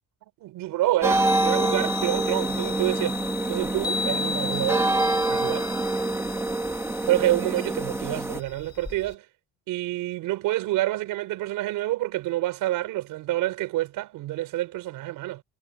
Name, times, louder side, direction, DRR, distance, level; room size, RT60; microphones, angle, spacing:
voice 1, 0.4-4.9 5.3-5.7 7.1-9.2 9.7-15.4, right 16 dB, 70° right, 5.0 m, -28 dB
Chime, 1.0-9.1, left 5 dB, 15° left, 4.5 m, -35 dB
sound 1, 1.0-8.4, right 2 dB, 10° right, 1.7 m, -26 dB
cardioid pair, 175°, 34 cm